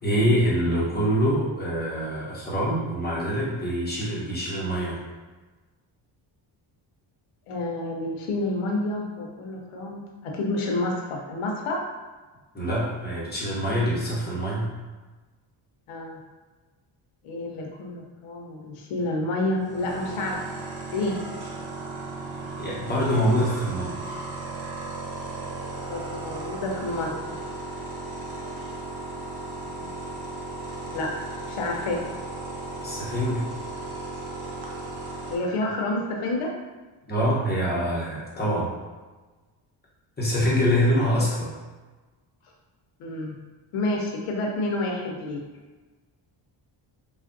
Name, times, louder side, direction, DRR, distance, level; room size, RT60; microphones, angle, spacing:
voice 1, 0.0-5.0 12.5-14.7 22.5-24.2 32.8-33.5 37.1-38.7 40.2-41.5, equal, 20° left, -6 dB, 0.9 m, -25 dB
voice 2, 7.5-11.8 15.9-16.2 17.2-20.6 20.9-21.2 25.9-27.4 29.7-30.0 30.9-31.1 31.5-32.0 35.3-36.5 43.0-43.3 43.7-45.4, left 2 dB, 90° left, 0 dB, 0.8 m, -29 dB
sound 1, 19.6-35.3, right 3 dB, 50° right, 0.7 m, -36 dB
3.2 x 2.4 x 2.6 m, 1.3 s
cardioid pair, 110°, 50 cm